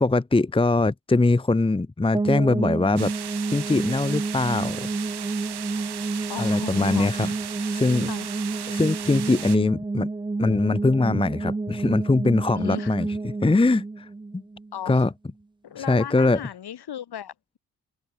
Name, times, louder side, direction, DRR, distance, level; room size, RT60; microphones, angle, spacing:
voice 1, 0.0-3.1 3.5-4.9 6.4-7.3 7.7-8.1 8.7-10.1 10.4-14.4 14.9-15.1 15.8-16.4, left 2 dB, 10° left, 1.1 m, -22 dB
sound 1, 2.1-15.0, right 3 dB, 10° right, 0.8 m, -30 dB
sound 2, 3.0-9.6, right 11 dB, 55° right, 4.9 m, -36 dB
voice 2, 6.3-7.3 8.1-8.3 12.5-13.0 14.7-15.1 15.6-17.3, left 10 dB, 55° left, 7.6 m, -36 dB
open air
figure-of-eight pair, 40°, 46 cm